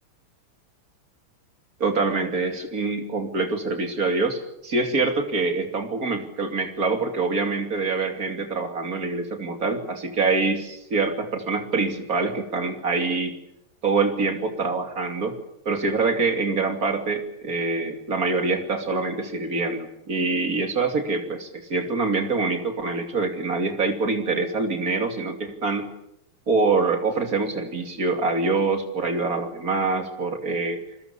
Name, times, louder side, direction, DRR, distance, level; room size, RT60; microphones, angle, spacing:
voice 1, 1.8-13.3 13.8-15.4 15.6-25.9 26.5-30.8, right 3 dB, 40° right, 5 dB, 3.2 m, -25 dB
28.5 x 21.0 x 7.1 m, 0.81 s
omnidirectional pair, 2.4 m